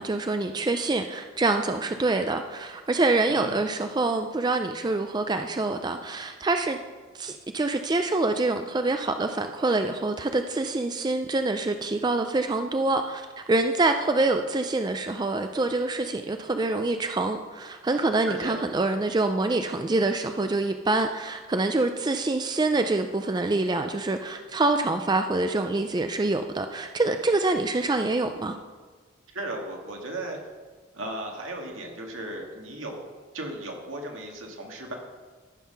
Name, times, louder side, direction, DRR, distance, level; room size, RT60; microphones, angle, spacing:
voice 1, 0.0-6.8 7.1-28.6, right 2 dB, 20° right, 7 dB, 0.4 m, -26 dB
voice 2, 3.3-3.6 18.3-18.6 29.3-30.4 30.9-35.0, right 1 dB, 80° right, 1 dB, 1.9 m, -36 dB
13.5 x 5.7 x 5.7 m, 1.4 s
head